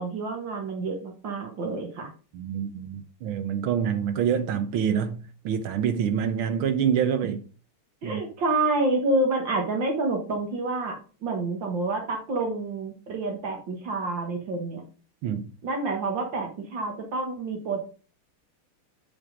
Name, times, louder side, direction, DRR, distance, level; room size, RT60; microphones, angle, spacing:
voice 1, 0.0-2.1 8.0-14.8 15.6-17.8, right 2 dB, 65° right, 2.1 m, -28 dB
voice 2, 2.3-7.4 8.0-8.2 15.2-15.5, right 8 dB, 80° right, 1.6 m, -26 dB
7.1 x 5.3 x 5.1 m
omnidirectional pair, 2.3 m